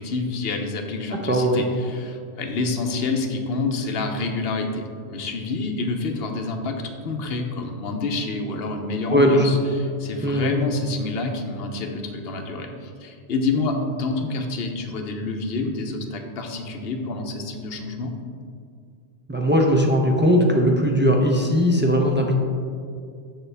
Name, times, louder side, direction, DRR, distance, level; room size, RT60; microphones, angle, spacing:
voice 1, 0.0-18.1, left 3 dB, 65° left, 4 dB, 0.9 m, -28 dB
voice 2, 1.1-1.6 9.1-9.5 10.2-10.5 19.3-22.3, equal, 20° right, 0 dB, 0.3 m, -19 dB
6.8 x 6.1 x 3.3 m, 2.3 s
omnidirectional pair, 1.1 m